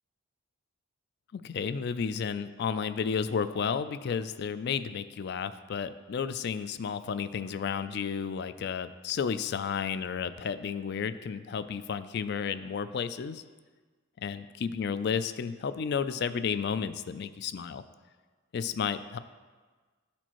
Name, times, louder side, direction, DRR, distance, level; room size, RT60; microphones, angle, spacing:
voice 1, 1.3-13.4 14.2-17.8 18.5-19.2, left 6 dB, 55° left, 13 dB, 0.3 m, -32 dB
12.5 x 4.3 x 3.0 m, 1.4 s
head